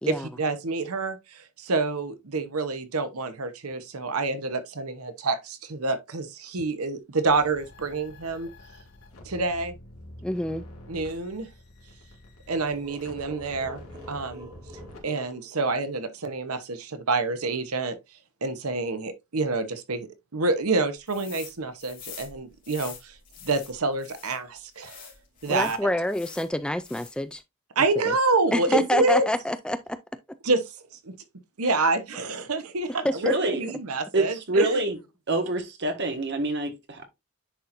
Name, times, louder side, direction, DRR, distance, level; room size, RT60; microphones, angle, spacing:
voice 1, 0.1-8.5 9.2-9.7 10.9-11.5 12.5-13.8 14.1-14.5 15.0-18.0 18.4-23.2 23.4-25.1 25.4-25.8 27.8-29.3 30.4-30.7 31.0-31.1 31.6-34.8, right 3 dB, 75° right, 1.0 m, -27 dB
sound 1, 7.3-15.0, left 1 dB, 70° left, 2.6 m, -47 dB
voice 2, 10.2-10.6 25.5-27.4 28.0-28.1 28.5-30.0 33.0-33.6, left 1 dB, 5° left, 0.3 m, -27 dB
sound 2, 12.5-16.2, equal, 20° right, 2.5 m, -47 dB
sound 3, 21.1-21.5 21.8-24.4 24.8-26.5 26.8-27.3, left 8 dB, 40° left, 3.0 m, -45 dB
voice 3, 33.2-33.6 34.1-35.0 35.3-37.0, right 2 dB, 50° right, 1.5 m, -26 dB
10.0 x 4.3 x 2.6 m
head